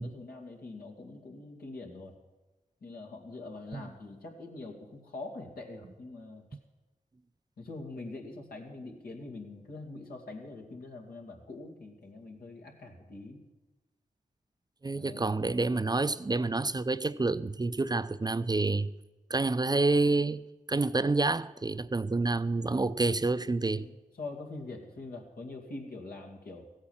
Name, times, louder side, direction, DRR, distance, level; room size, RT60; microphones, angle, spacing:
voice 1, 0.0-2.2 2.8-6.5 7.6-13.4 14.9-15.3 23.7-26.7, left 2 dB, 90° left, 2.2 m, -44 dB
voice 2, 14.8-18.9 19.3-20.4 20.7-23.9, right 3 dB, 25° right, 0.5 m, -28 dB
15.5 x 8.9 x 7.2 m
cardioid pair, 45°, 15 cm